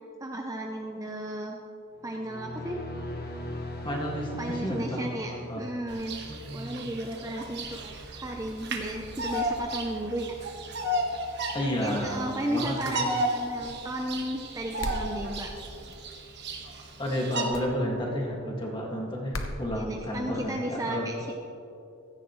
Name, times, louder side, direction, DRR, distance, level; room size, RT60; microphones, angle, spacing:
voice 1, 0.2-1.6 2.0-2.8 4.4-6.2 6.5-7.8 8.1-10.3 11.8-15.5 19.7-21.3, right 1 dB, 15° right, 1 dB, 0.6 m, -34 dB
sound 1, 2.0-6.3, left 1 dB, 45° left, 1.5 m, -40 dB
voice 2, 3.8-5.7 6.3-6.9 11.5-12.9 17.0-21.1, equal, 20° left, -2 dB, 2.0 m, -32 dB
Bird vocalization bird call bird song, 5.9-17.5, right 1 dB, 50° right, 1.4 m, -34 dB
sound 2, 14.8-15.1 17.5-17.7 19.3-19.6, left 1 dB, 65° left, 1.1 m, -33 dB
16.0 x 14.0 x 3.1 m, 2.7 s
head